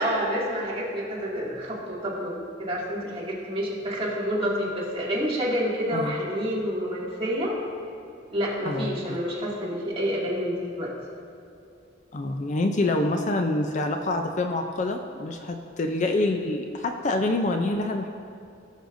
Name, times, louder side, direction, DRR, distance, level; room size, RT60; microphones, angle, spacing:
voice 1, 0.0-7.6 8.2-10.9, equal, 30° right, -6 dB, 2.2 m, -28 dB
voice 2, 8.6-9.2 12.1-18.1, left 2 dB, 40° left, 4 dB, 0.5 m, -26 dB
17.5 x 6.5 x 2.6 m, 2.7 s
head